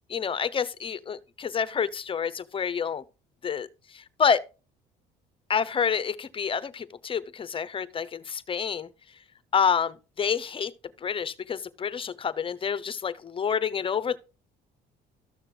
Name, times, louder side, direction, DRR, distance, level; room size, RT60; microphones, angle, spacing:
voice 1, 0.1-3.0 3.4-4.4 5.5-8.9 9.5-10.7 11.0-14.2, left 7 dB, 30° left, 0.7 m, -28 dB
13.5 x 6.5 x 3.8 m
cardioid pair, 110°, 17 cm